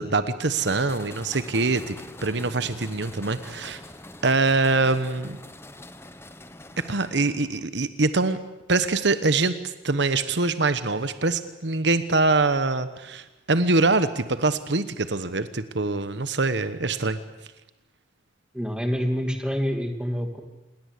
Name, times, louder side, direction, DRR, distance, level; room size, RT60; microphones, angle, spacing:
voice 1, 0.0-1.9 2.2-3.8 4.2-5.4 6.8-8.4 8.7-17.2, right 3 dB, 65° right, 12 dB, 1.2 m, -24 dB
sound 1, 0.6-7.7, left 1 dB, 15° left, 1.3 m, -44 dB
voice 2, 18.5-20.4, equal, 5° right, 5 dB, 2.6 m, -27 dB
27.5 x 21.5 x 8.4 m, 1.0 s
head